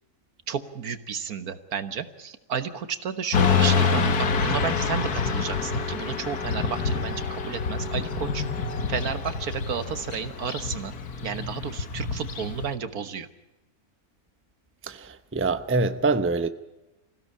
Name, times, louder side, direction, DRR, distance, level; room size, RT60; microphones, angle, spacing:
voice 1, 0.5-8.4 8.9-10.9 11.2-13.3, right 7 dB, 70° right, 1.7 m, -32 dB
Motorcycle / Traffic noise roadway noise, 3.3-12.7, left 5 dB, 75° left, 1.9 m, -27 dB
voice 2, 14.8-16.5, right 3 dB, 10° right, 0.6 m, -25 dB
26.0 x 16.5 x 8.5 m
omnidirectional pair, 1.6 m